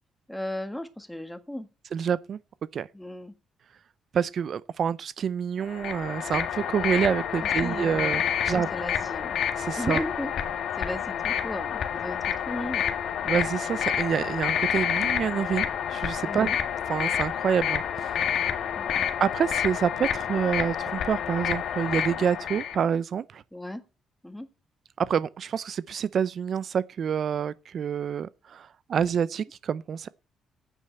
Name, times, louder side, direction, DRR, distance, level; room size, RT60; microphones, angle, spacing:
voice 1, 0.3-1.7 2.9-3.3 7.4-9.4 9.8-10.3 10.8-12.8 16.2-16.6 18.8-19.1 23.5-23.8 24.2-24.5, left 1 dB, 5° left, 1.6 m, -36 dB
voice 2, 1.9-2.4 2.7-2.9 4.1-8.7 9.6-10.0 13.3-16.5 16.9-18.2 19.2-23.4 25.0-30.1, right 7 dB, 55° right, 0.5 m, -27 dB
sound 1, 5.7-22.8, left 9 dB, 70° left, 1.7 m, -29 dB
9.2 x 7.5 x 8.0 m
cardioid pair, 90°, 0 cm